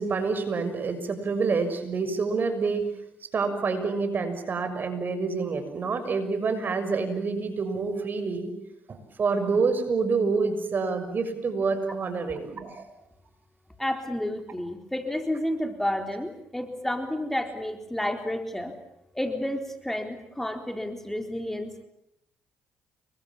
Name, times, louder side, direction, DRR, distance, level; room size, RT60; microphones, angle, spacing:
voice 1, 0.0-2.9 3.2-8.5 8.9-12.9, right 4 dB, 45° right, 9 dB, 6.4 m, -27 dB
voice 2, 13.8-18.7 19.1-21.8, left 1 dB, 5° left, 5 dB, 4.0 m, -30 dB
30.0 x 23.5 x 7.4 m, 0.80 s
supercardioid pair, 65°, 4 cm